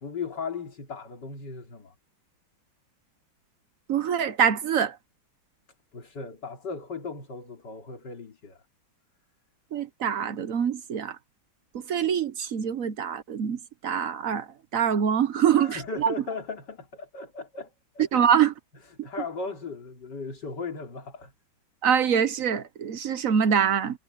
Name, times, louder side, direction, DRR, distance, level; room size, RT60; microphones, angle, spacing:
voice 1, 0.0-1.9 5.9-8.6 15.5-18.1 19.0-21.3, left 4 dB, 55° left, 3.7 m, -37 dB
voice 2, 3.9-5.0 9.7-11.2 11.9-14.5 14.7-16.1 18.1-18.5 21.8-24.0, right 8 dB, 55° right, 1.0 m, -24 dB
omnidirectional pair, 2.2 m